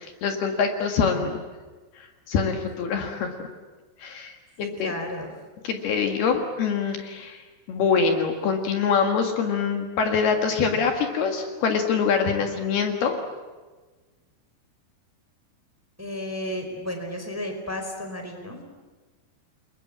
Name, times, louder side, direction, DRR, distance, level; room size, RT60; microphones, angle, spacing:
voice 1, 0.0-1.4 2.0-3.4 4.0-4.9 5.6-7.4 7.7-13.2, left 5 dB, 65° left, 4 dB, 3.7 m, -24 dB
voice 2, 4.6-5.3 16.0-18.6, left 1 dB, 5° right, 5 dB, 3.9 m, -33 dB
29.0 x 22.5 x 8.8 m, 1.3 s
omnidirectional pair, 5.0 m